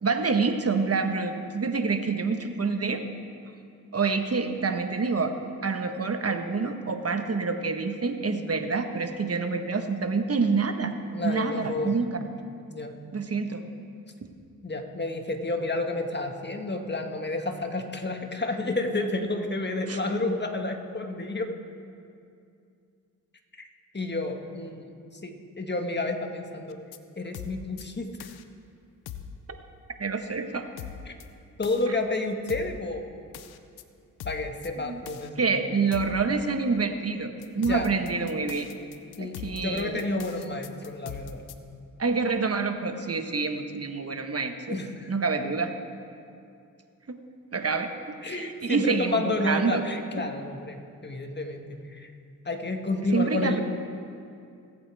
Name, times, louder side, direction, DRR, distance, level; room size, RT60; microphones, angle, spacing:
voice 1, 0.0-3.0 3.9-5.3 5.6-10.9 11.2-12.2 13.1-13.6 19.9-20.0 30.0-30.6 34.8-35.0 35.4-38.7 39.2-40.0 42.0-44.8 45.1-45.7 47.5-47.9 48.2-49.8 53.1-53.6, right 4 dB, 40° right, 6 dB, 1.3 m, -27 dB
voice 2, 11.1-11.9 12.7-13.0 14.6-21.5 23.6-23.7 23.9-26.8 27.2-28.1 31.1-31.2 31.6-33.1 34.2-35.6 37.6-37.9 39.2-41.5 44.7-45.1 48.2-52.1 52.5-53.6, left 2 dB, 30° left, 4 dB, 1.7 m, -30 dB
sound 1, 26.7-27.0 27.3-27.8 28.2-28.4 29.1-29.4 30.8-31.2 31.6-31.9 32.5-32.8 33.3-33.8 34.2-34.7 35.1-35.3 35.9-36.2 37.4-41.5, left 9 dB, 90° left, 0.6 m, -41 dB
22.0 x 8.6 x 3.5 m, 2.4 s
supercardioid pair, 45°, 37 cm